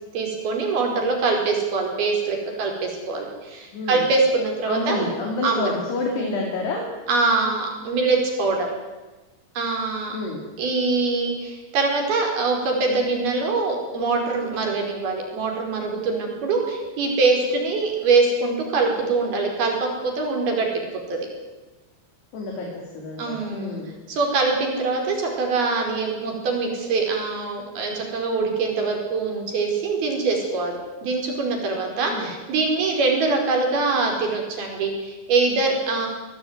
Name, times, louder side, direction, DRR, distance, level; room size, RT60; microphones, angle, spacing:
voice 1, 0.1-5.1 5.4-5.7 6.2-6.4 7.1-8.7 9.6-10.2 10.6-20.8 21.1-21.2 23.2-23.8 24.1-30.7 31.0-36.1, right 3 dB, 65° right, 2 dB, 6.8 m, -23 dB
voice 2, 3.7-4.1 4.7-6.9 10.1-10.4 22.3-22.7 23.0-23.9 32.1-32.3, left 3 dB, 80° left, 0 dB, 5.4 m, -28 dB
23.0 x 18.0 x 9.7 m, 1.2 s
omnidirectional pair, 4.7 m